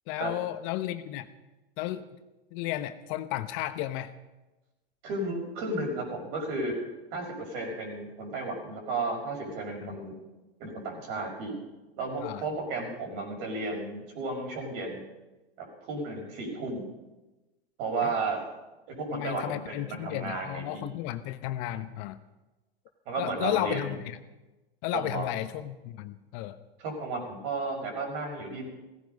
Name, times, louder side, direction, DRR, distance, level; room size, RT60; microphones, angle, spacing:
voice 1, 0.1-1.3 1.8-2.1 2.5-4.1 9.8-9.9 12.2-12.4 18.0-18.1 19.1-22.2 23.2-24.2 24.8-26.6, left 14 dB, 50° left, 11 dB, 1.0 m, -33 dB
voice 2, 5.0-6.7 7.1-10.2 10.6-11.5 12.0-15.0 15.6-16.8 17.8-18.4 18.9-20.8 23.1-24.0 24.9-25.3 26.8-28.7, right 3 dB, 55° right, 2 dB, 5.9 m, -33 dB
16.0 x 15.0 x 5.4 m, 1.1 s
hypercardioid pair, 100°, 30 cm